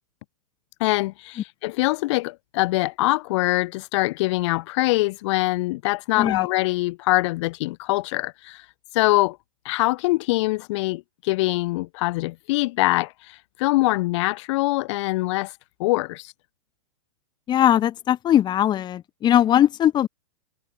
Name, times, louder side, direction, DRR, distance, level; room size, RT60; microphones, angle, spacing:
voice 1, 0.8-8.6 8.9-9.4 9.6-15.5 15.8-16.3, left 21 dB, 50° left, 1.3 m, -23 dB
voice 2, 6.2-6.5 17.5-20.1, left 11 dB, 25° left, 1.2 m, -20 dB
hypercardioid pair, 125°, 19 cm